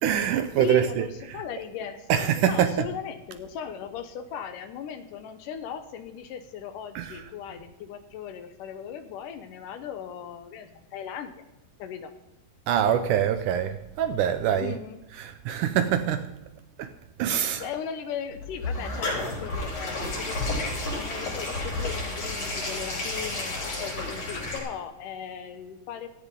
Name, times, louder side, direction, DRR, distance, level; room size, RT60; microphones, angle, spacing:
voice 1, 0.0-1.1 2.1-2.7 7.0-7.1 12.7-14.8 15.2-16.3 16.8-16.9 17.2-17.6, right 9 dB, 75° right, 2.0 m, -24 dB
voice 2, 0.6-11.3 11.8-12.1 14.6-15.0 17.3-26.1, left 8 dB, 75° left, 2.3 m, -38 dB
sound 1, 18.3-24.6, left 2 dB, 45° left, 5.6 m, -31 dB
17.0 x 14.0 x 3.8 m
omnidirectional pair, 4.1 m